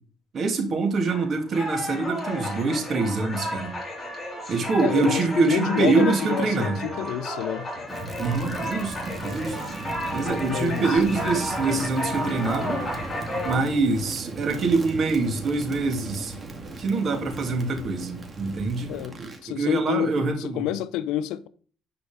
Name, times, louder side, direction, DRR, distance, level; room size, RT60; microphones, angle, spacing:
voice 1, 0.3-3.7 4.5-6.9 8.2-9.5 10.1-12.8 13.4-16.3 16.8-18.9 19.2-20.7, right 3 dB, 45° right, 2.8 m, -25 dB
sound 1, 1.1-13.6, equal, 20° left, 4.2 m, -32 dB
voice 2, 4.8-7.7 10.5-10.8 18.9-19.1 19.4-21.5, left 12 dB, 80° left, 0.7 m, -28 dB
Crackle, 7.9-19.5, right 2 dB, 25° right, 2.3 m, -37 dB
10.5 x 5.0 x 5.3 m
cardioid pair, 95°, 0 cm